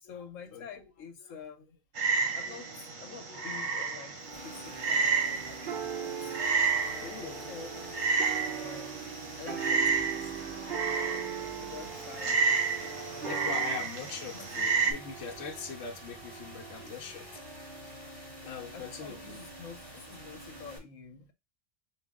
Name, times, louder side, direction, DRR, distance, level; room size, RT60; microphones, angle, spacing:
voice 1, 0.0-1.8 2.1-6.1 6.8-11.3 11.6-13.6 14.3-14.5 18.7-21.3, left 6 dB, 75° left, 1.2 m, -48 dB
Frog, 2.0-14.9, right 5 dB, 70° right, 1.4 m, -31 dB
sound 1, 4.3-20.8, right 2 dB, 20° right, 1.9 m, -47 dB
sound 2, 4.3-13.8, right 8 dB, 55° right, 0.7 m, -40 dB
voice 2, 7.0-7.4 12.3-12.4 13.2-17.3 18.4-19.4, left 6 dB, 55° left, 1.1 m, -41 dB
4.6 x 2.6 x 3.7 m
omnidirectional pair, 1.4 m